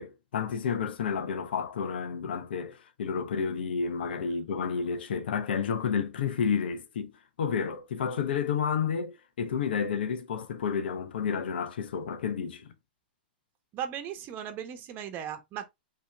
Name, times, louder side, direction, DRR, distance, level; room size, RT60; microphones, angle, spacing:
voice 1, 0.0-7.1 7.4-12.7, left 6 dB, 70° left, 0.8 m, -30 dB
voice 2, 13.7-15.7, right 9 dB, 35° right, 1.0 m, -37 dB
5.2 x 3.0 x 3.4 m
hypercardioid pair, 115°, 6 cm